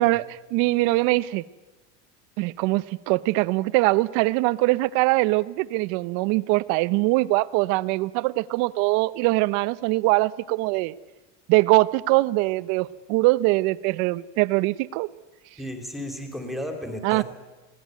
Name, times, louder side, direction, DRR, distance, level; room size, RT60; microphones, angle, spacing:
voice 1, 0.0-1.4 2.4-10.9 11.5-15.1 17.0-17.2, right 21 dB, 55° right, 17 dB, 0.8 m, -22 dB
voice 2, 15.6-17.2, left 1 dB, ahead, 5 dB, 3.1 m, -34 dB
20.5 x 18.0 x 9.3 m, 1.1 s
supercardioid pair, 150°, 36 cm